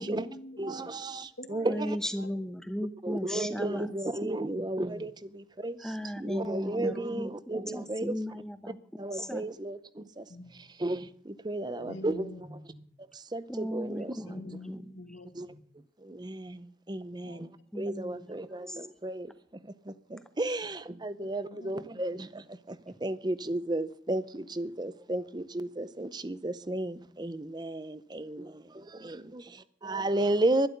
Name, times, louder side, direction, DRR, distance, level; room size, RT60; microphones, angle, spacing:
voice 1, 0.0-2.4 4.5-4.8 10.3-10.6 11.7-12.8 14.2-15.6 17.1-17.5 21.2-22.2, left 1 dB, 80° left, 2.3 m, -47 dB
voice 2, 0.6-2.0 3.0-8.2 9.0-10.3 10.8-12.3 13.1-14.3 15.3-15.5 16.0-17.5 17.8-19.3 19.6-30.7, right 1 dB, 20° right, 0.6 m, -33 dB
voice 3, 1.7-3.9 4.2-4.3 5.8-7.3 7.7-8.8 9.1-9.4 13.5-14.8 17.7-18.3 18.7-18.8, equal, 5° left, 0.9 m, -36 dB
12.0 x 11.5 x 6.7 m
head